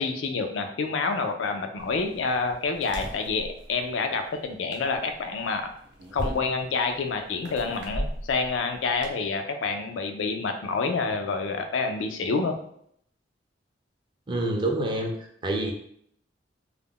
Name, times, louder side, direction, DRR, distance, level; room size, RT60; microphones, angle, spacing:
voice 1, 0.0-5.7 6.1-12.6, left 4 dB, 90° left, 5 dB, 0.4 m, -28 dB
sound 1, 1.8-9.1, right 1 dB, 70° right, 0.6 m, -39 dB
voice 2, 14.3-15.1 15.4-15.7, right 1 dB, 25° right, 2 dB, 0.4 m, -26 dB
2.3 x 2.0 x 3.5 m, 0.69 s
head